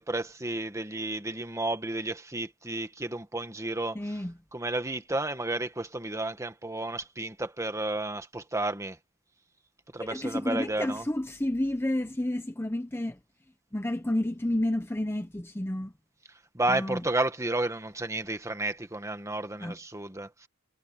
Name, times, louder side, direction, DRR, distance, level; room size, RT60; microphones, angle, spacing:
voice 1, 0.0-4.0 4.5-9.0 9.9-11.0 16.5-20.5, right 2 dB, 15° right, 1.7 m, -32 dB
voice 2, 3.9-4.3 10.0-13.2 13.7-15.9 16.7-17.0 19.6-19.8, left 1 dB, 10° left, 0.8 m, -30 dB
head